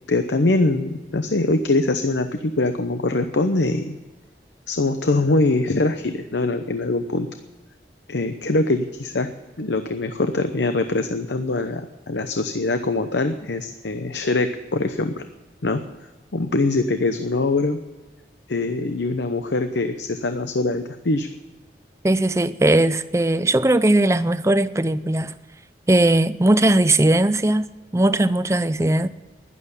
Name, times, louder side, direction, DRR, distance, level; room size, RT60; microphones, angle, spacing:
voice 1, 0.1-4.0 4.7-7.3 8.1-9.3 9.6-15.2 15.6-15.8 16.3-17.8 18.5-21.3, left 2 dB, 80° left, 0.8 m, -23 dB
voice 2, 22.0-25.3 25.9-27.7 27.9-29.1, right 1 dB, 15° right, 0.5 m, -18 dB
12.5 x 11.0 x 9.8 m
head